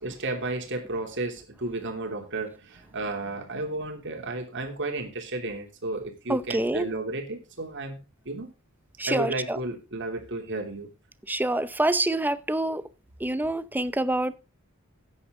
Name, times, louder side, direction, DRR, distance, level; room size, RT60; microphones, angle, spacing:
voice 1, 0.0-8.5 9.1-10.9, right 2 dB, 60° right, 3.1 m, -33 dB
voice 2, 6.3-6.9 9.0-9.6 11.3-12.8 13.2-14.4, right 1 dB, 10° right, 0.7 m, -26 dB
13.5 x 9.7 x 3.8 m
head